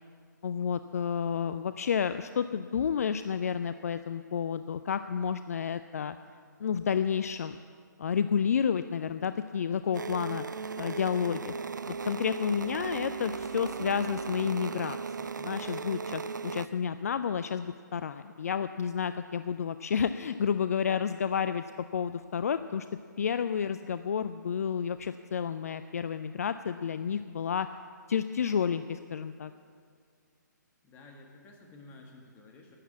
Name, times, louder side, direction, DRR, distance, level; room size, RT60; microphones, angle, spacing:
voice 1, 0.4-6.2 6.6-7.6 8.0-10.4 10.8-11.5 11.9-21.6 21.9-22.9 23.2-27.7 28.1-29.5, left 7 dB, 50° left, 12 dB, 0.4 m, -30 dB
sound 1, 9.9-16.7, right 5 dB, 70° right, 0.4 m, -37 dB
voice 2, 30.8-32.8, left 2 dB, 20° left, 1 dB, 1.9 m, -52 dB
12.0 x 9.3 x 8.3 m, 2.2 s
figure-of-eight pair, 135°, 10 cm